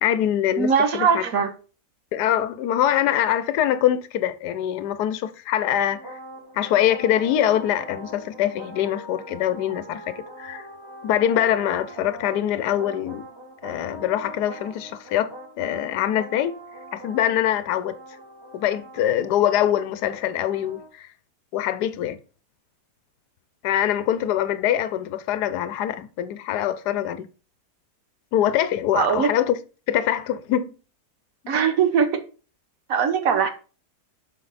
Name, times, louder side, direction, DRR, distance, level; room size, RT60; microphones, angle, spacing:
voice 1, 0.0-1.2 2.1-6.2 6.5-10.7 11.0-13.3 13.6-16.6 16.9-17.9 18.5-21.1 21.5-22.2 23.6-27.3 28.3-29.6 29.9-30.8, left 11 dB, 75° left, 1.2 m, -24 dB
voice 2, 0.6-1.5 28.9-29.3 31.5-32.2 32.9-33.5, right 6 dB, 60° right, 1.3 m, -20 dB
sound 1, 5.9-20.9, right 1 dB, 15° right, 1.0 m, -42 dB
7.7 x 5.5 x 4.1 m
omnidirectional pair, 1.8 m